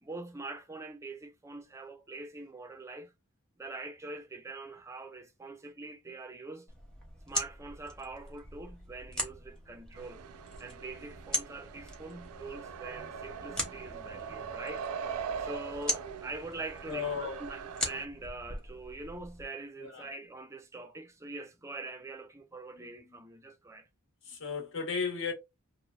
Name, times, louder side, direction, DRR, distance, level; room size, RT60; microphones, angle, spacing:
voice 1, 0.0-3.1 3.6-6.7 7.3-10.2 10.6-23.9, right 2 dB, 15° right, 0.4 m, -44 dB
sound 1, 6.7-19.4, equal, 5° left, 0.8 m, -41 dB
sound 2, 9.9-18.1, right 6 dB, 90° right, 0.4 m, -42 dB
voice 2, 16.9-17.4 19.8-20.1 22.7-22.9 24.2-25.3, left 5 dB, 60° left, 0.9 m, -35 dB
3.1 x 2.0 x 2.3 m
head